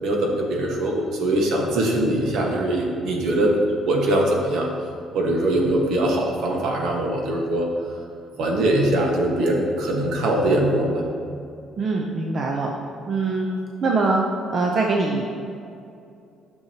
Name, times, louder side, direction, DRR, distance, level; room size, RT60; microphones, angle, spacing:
voice 1, 0.0-3.5 3.8-4.7 5.1-7.7 8.4-11.0, right 1 dB, 65° right, 0 dB, 1.4 m, -22 dB
voice 2, 11.8-12.7 13.1-13.5 13.8-14.2 14.5-15.2, right 3 dB, 35° right, 0 dB, 0.6 m, -22 dB
10.5 x 6.3 x 2.9 m, 2.5 s
cardioid pair, 150°, 0 cm